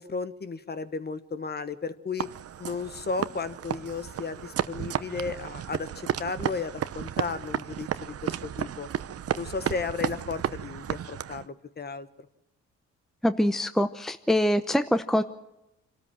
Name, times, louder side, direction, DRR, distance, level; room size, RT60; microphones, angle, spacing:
voice 1, 0.0-2.3 2.6-8.9 9.4-12.1, left 4 dB, 35° left, 12 dB, 1.3 m, -34 dB
sound 1, 2.2-11.5, right 10 dB, 50° right, 0.8 m, -33 dB
voice 2, 13.2-15.2, left 1 dB, ahead, 10 dB, 0.8 m, -24 dB
27.0 x 13.0 x 7.5 m, 0.93 s
cardioid pair, 90°, 30 cm